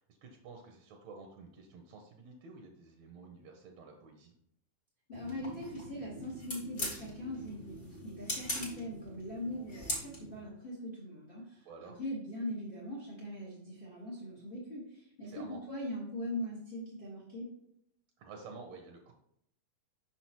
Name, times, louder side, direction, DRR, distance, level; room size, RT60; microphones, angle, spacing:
voice 1, 0.0-4.3 11.6-12.0 15.2-15.6 18.2-19.1, right 4 dB, 75° right, 2 dB, 1.6 m, -51 dB
voice 2, 5.1-17.5, left 1 dB, 80° left, -5 dB, 0.4 m, -41 dB
sound 1, 5.1-10.4, left 1 dB, 40° left, 0.7 m, -41 dB
6.0 x 5.7 x 2.9 m, 0.73 s
omnidirectional pair, 3.9 m